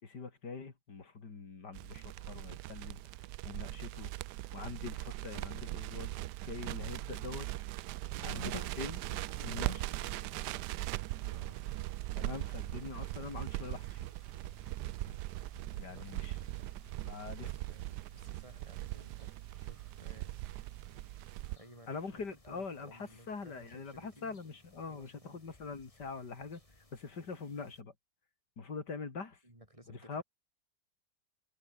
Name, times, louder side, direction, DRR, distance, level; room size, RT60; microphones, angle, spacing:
voice 1, 0.0-3.0 3.4-4.1 4.5-6.2 6.4-7.5 8.2-9.0 9.4-9.9 12.2-14.1 15.8-16.4 17.0-17.5 21.9-26.6 26.9-27.9 28.6-29.4 29.9-30.2, left 4 dB, 85° left, 3.6 m, -43 dB
Crackle, 1.7-21.6, right 16 dB, 80° right, 1.2 m, -40 dB
sound 1, 8.2-27.8, left 2 dB, 20° left, 3.0 m, -56 dB
voice 2, 11.0-11.8 15.9-16.4 17.4-19.3 19.6-20.4 21.5-24.4 24.9-25.4 29.4-30.2, right 1 dB, 20° right, 5.9 m, -57 dB
omnidirectional pair, 1.8 m